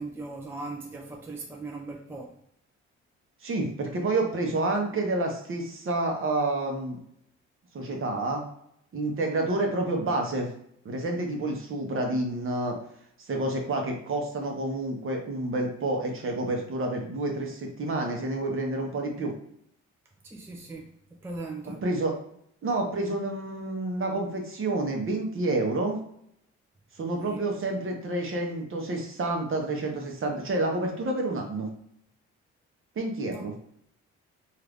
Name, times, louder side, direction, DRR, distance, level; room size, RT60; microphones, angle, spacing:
voice 1, 0.0-2.3 20.2-21.8 27.2-27.5 33.3-33.4, right 3 dB, 10° right, 0 dB, 0.4 m, -39 dB
voice 2, 3.4-7.0 7.7-8.4 8.9-10.5 10.8-12.8 13.3-19.3 21.8-22.2 22.6-26.0 26.9-31.7 33.0-33.5, right 2 dB, 45° right, 2 dB, 0.9 m, -29 dB
2.7 x 2.5 x 3.5 m, 0.69 s
cardioid pair, 90°, 30 cm